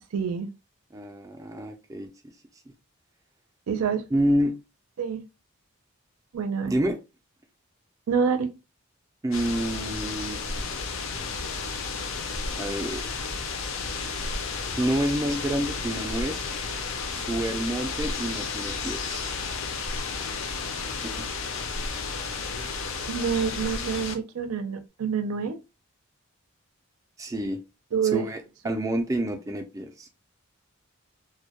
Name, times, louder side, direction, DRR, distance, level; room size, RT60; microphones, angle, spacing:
voice 1, 0.1-0.5 3.7-4.0 5.0-5.2 6.3-6.7 8.1-8.5 23.1-25.6 27.9-28.3, right 6 dB, 85° right, 0.5 m, -27 dB
voice 2, 0.9-2.1 4.1-4.6 6.7-7.0 9.2-10.4 12.5-13.2 14.8-16.5 17.1-19.2 27.2-27.6 28.1-30.1, right 1 dB, 15° right, 0.3 m, -28 dB
sound 1, 9.3-24.1, left 4 dB, 60° left, 0.4 m, -32 dB
2.1 x 2.1 x 2.8 m
head